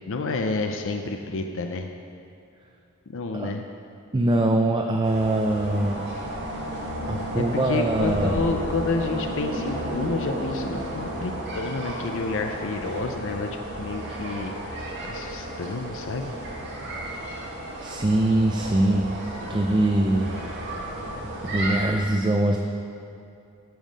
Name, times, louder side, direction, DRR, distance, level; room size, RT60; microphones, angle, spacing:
voice 1, 0.1-1.9 3.1-3.6 7.4-16.4, left 3 dB, 60° left, 4 dB, 0.5 m, -30 dB
voice 2, 4.1-6.0 7.1-8.4 17.1-17.2 17.8-19.1 19.5-20.3 21.4-22.6, right 1 dB, 20° right, 2 dB, 0.4 m, -23 dB
sound 1, 5.0-21.9, right 1 dB, 55° right, 2.0 m, -33 dB
9.2 x 7.2 x 6.3 m, 2.6 s
head